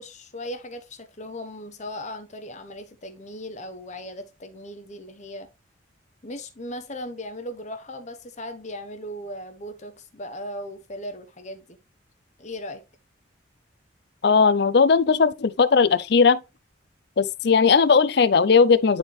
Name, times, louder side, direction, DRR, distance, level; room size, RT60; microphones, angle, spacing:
voice 1, 0.0-5.5 6.2-11.8 12.4-12.8, left 1 dB, 35° left, 0.9 m, -37 dB
voice 2, 14.2-16.4 17.2-19.0, left 5 dB, 55° left, 0.5 m, -18 dB
9.8 x 4.4 x 3.2 m
head